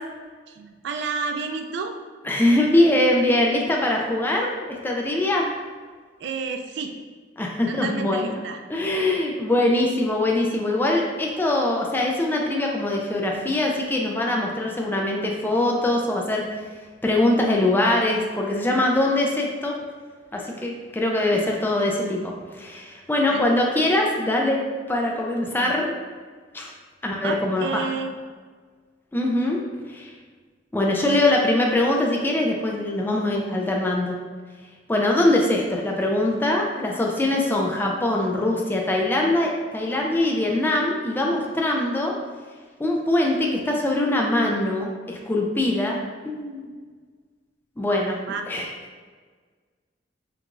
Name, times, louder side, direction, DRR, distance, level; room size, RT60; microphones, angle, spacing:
voice 1, 0.6-1.9 6.2-6.9 7.7-8.6 21.3-21.4 23.3-23.5 25.6-25.7 27.2-28.1 48.2-48.6, right 5 dB, 65° right, 5 dB, 0.4 m, -30 dB
voice 2, 2.2-5.5 7.4-8.4 8.7-16.4 17.0-19.8 20.3-25.9 26.5-26.7 27.0-27.8 29.1-29.6 29.9-30.1 30.7-34.2 34.9-42.1 42.8-46.0 46.2-46.7 47.8-48.2 48.5-48.7, left 1 dB, 10° left, -1 dB, 0.3 m, -22 dB
4.6 x 2.4 x 2.4 m, 1.5 s
head